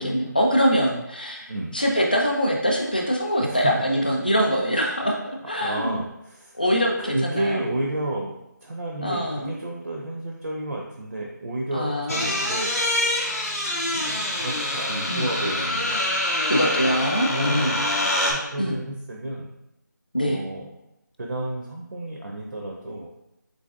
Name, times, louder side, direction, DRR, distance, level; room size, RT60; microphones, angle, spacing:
voice 1, 0.0-6.0 6.5-7.6 9.0-9.5 11.7-12.4 15.1-15.3 16.5-17.8 18.6-18.8 20.1-20.4, equal, 25° left, 0 dB, 0.3 m, -24 dB
voice 2, 5.6-6.5 7.0-8.4 8.6-13.2 13.9-16.0 16.9-17.8 18.3-19.5 20.2-20.7 21.2-23.1, right 1 dB, 65° right, -1 dB, 0.5 m, -31 dB
sound 1, 12.1-18.3, left 1 dB, 45° left, 0.7 m, -25 dB
3.9 x 3.0 x 2.4 m, 0.88 s
figure-of-eight pair, 175°, 10 cm